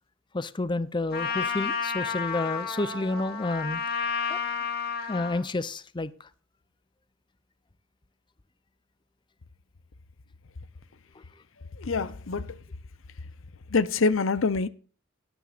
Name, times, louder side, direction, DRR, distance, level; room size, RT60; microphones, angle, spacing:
voice 1, 0.3-3.8 4.3-4.4 5.1-6.3, left 2 dB, 25° left, 0.6 m, -30 dB
Trumpet, 1.1-5.4, left 6 dB, 55° left, 2.3 m, -31 dB
voice 2, 11.8-12.5 13.7-14.7, left 4 dB, 90° left, 0.7 m, -25 dB
18.5 x 9.2 x 2.5 m
head